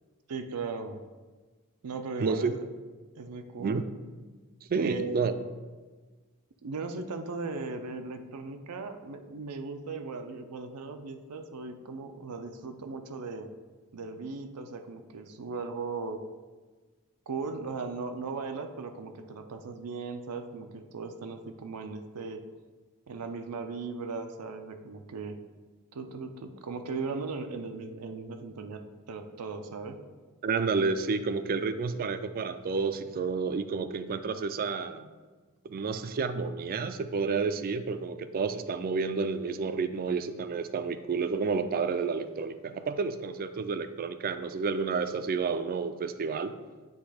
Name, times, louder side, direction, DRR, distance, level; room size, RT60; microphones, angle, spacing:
voice 1, 0.3-1.0 1.8-2.7 3.2-3.8 4.7-5.2 6.6-13.5 13.9-16.2 17.3-22.4 23.1-25.4 25.9-28.8 29.1-30.0, right 4 dB, 90° right, 7 dB, 0.5 m, -37 dB
voice 2, 2.2-2.5 3.6-3.8 4.7-5.3 30.4-35.1 35.6-46.5, right 4 dB, 40° right, 11 dB, 0.3 m, -30 dB
8.0 x 3.1 x 4.9 m, 1.3 s
head